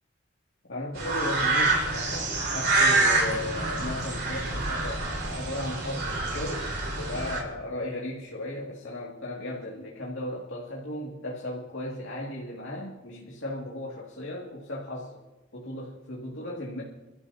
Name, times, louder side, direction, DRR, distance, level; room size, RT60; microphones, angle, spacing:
voice 1, 0.7-15.2 15.5-16.8, left 1 dB, 85° left, -4 dB, 2.2 m, -36 dB
sound 1, 0.9-7.4, right 2 dB, 55° right, 3.7 m, -27 dB
29.0 x 13.0 x 2.8 m, 1.0 s
head